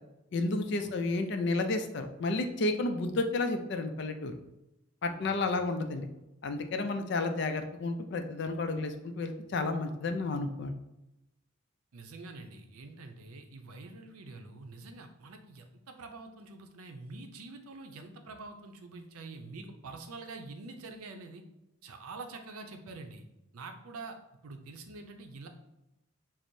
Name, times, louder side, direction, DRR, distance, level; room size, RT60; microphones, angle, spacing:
voice 1, 0.3-4.3 5.0-6.1 6.4-10.8, left 2 dB, 55° left, 6 dB, 0.4 m, -31 dB
voice 2, 5.2-5.6 11.9-21.4 21.8-23.2 23.5-24.2 24.4-25.5, right 3 dB, 90° right, 5 dB, 0.5 m, -46 dB
6.0 x 2.0 x 2.6 m, 0.92 s
head